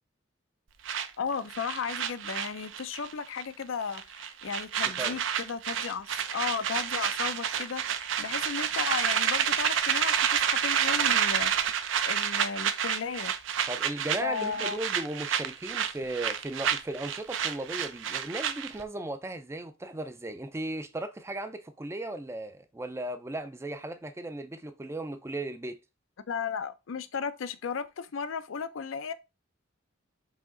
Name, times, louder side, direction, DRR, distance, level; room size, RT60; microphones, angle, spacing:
sound 1, 0.9-3.1 3.4-3.6 3.9-18.8, right 8 dB, 70° right, 0.5 m, -29 dB
voice 1, 1.2-11.5 12.0-13.3 14.2-14.8 26.3-29.1, left 6 dB, 80° left, 0.5 m, -35 dB
voice 2, 13.7-25.8, right 1 dB, 15° right, 0.4 m, -36 dB
4.9 x 2.9 x 3.7 m
head